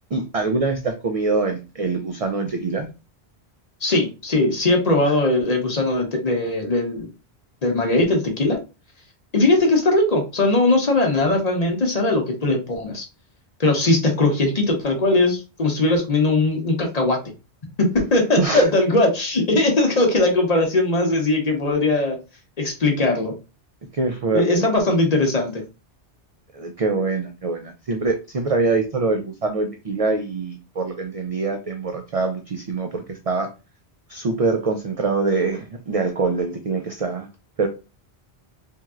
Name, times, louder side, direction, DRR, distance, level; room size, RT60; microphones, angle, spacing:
voice 1, 0.1-2.9 18.4-18.6 23.9-24.7 26.5-33.5 34.1-37.3 37.6-37.7, right 3 dB, 60° right, 4 dB, 0.3 m, -24 dB
voice 2, 3.8-7.1 7.6-8.6 9.3-13.1 13.6-17.2 17.8-22.2 22.6-23.3 24.3-25.6, left 2 dB, 40° left, 2 dB, 0.7 m, -20 dB
3.1 x 2.6 x 2.3 m, 0.29 s
omnidirectional pair, 1.1 m